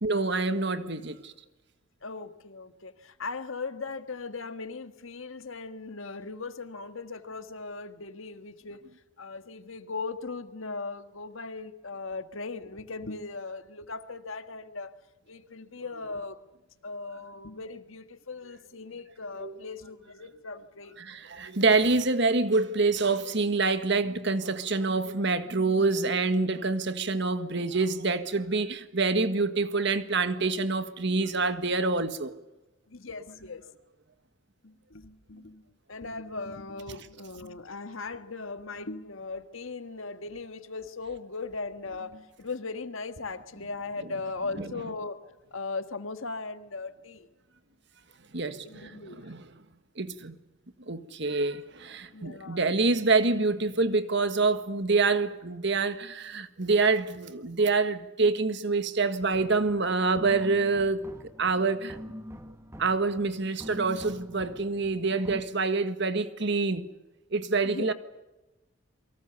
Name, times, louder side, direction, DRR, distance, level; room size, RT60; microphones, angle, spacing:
voice 1, 0.0-1.3 19.4-19.5 21.0-32.3 44.6-44.7 48.3-48.9 49.2-49.4 50.0-50.3 50.9-61.1 61.4-62.0 62.8-66.9 67.3-67.9, right 3 dB, 55° right, 1.7 m, -26 dB
voice 2, 2.0-8.8 9.2-14.9 15.3-16.4 16.8-20.9 32.9-33.6 34.6-35.6 35.9-47.3 48.6-49.4 52.1-52.7 67.6-67.9, left 3 dB, 70° left, 1.7 m, -38 dB
sound 1, 59.3-65.4, equal, 15° right, 1.4 m, -45 dB
28.5 x 24.0 x 7.0 m
head